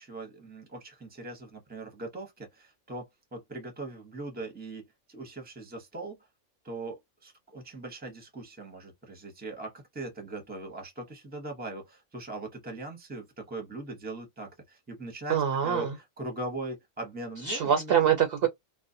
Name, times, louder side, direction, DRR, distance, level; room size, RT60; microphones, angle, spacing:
voice 1, 0.0-6.2 6.6-18.0, right 2 dB, 10° right, 0.6 m, -40 dB
voice 2, 15.3-15.9 17.4-18.5, right 8 dB, 65° right, 0.6 m, -24 dB
2.4 x 2.1 x 2.5 m
omnidirectional pair, 1.4 m